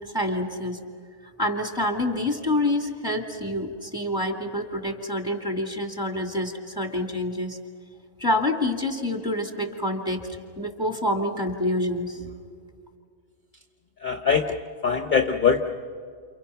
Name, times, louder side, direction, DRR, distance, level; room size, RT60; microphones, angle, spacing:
voice 1, 0.1-0.8 1.2-7.6 8.2-10.3 10.6-12.2, left 1 dB, 5° right, 3 dB, 2.5 m, -27 dB
voice 2, 14.0-15.7, left 6 dB, 35° left, 5 dB, 1.1 m, -23 dB
29.5 x 29.0 x 5.8 m, 2.1 s
omnidirectional pair, 1.5 m